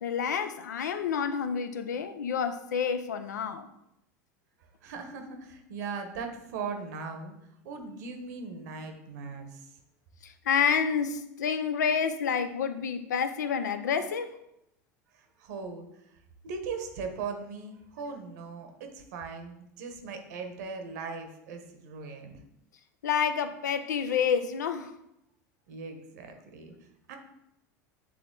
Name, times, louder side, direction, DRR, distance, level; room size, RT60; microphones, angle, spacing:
voice 1, 0.0-3.7 10.2-14.3 23.0-24.9, left 7 dB, 85° left, 0.5 m, -29 dB
voice 2, 4.8-7.3 7.6-9.7 15.1-15.9 16.4-22.4 25.7-26.7 27.1-27.2, right 5 dB, 75° right, 1.1 m, -39 dB
7.6 x 3.2 x 3.8 m
hypercardioid pair, 90°, 9 cm